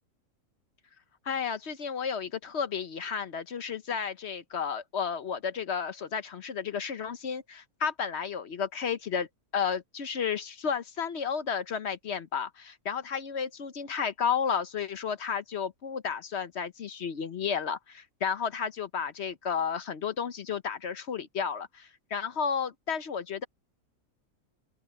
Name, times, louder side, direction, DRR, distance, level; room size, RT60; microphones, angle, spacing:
voice 1, 1.3-9.3 9.5-23.5, left 6 dB, 55° left, 1.0 m, -32 dB
open air
omnidirectional pair, 1.5 m